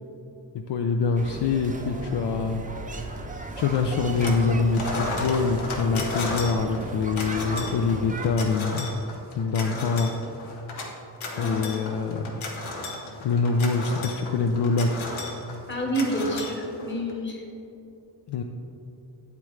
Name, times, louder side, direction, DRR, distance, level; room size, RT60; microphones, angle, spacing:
voice 1, 0.7-3.3 3.6-8.9 9.4-10.1 11.4-12.3 13.2-15.1 18.3-18.4, left 4 dB, 60° left, 3 dB, 0.5 m, -25 dB
sound 1, 1.2-8.3, right 2 dB, 20° right, 0.4 m, -36 dB
sound 2, 3.6-4.5 4.7-17.1, left 2 dB, 80° left, 1.2 m, -34 dB
voice 2, 11.3-11.6 13.5-13.6 15.7-17.4, right 1 dB, 25° left, 0 dB, 1.3 m, -29 dB
8.8 x 8.4 x 3.2 m, 2.8 s
wide cardioid pair, 145°, 47 cm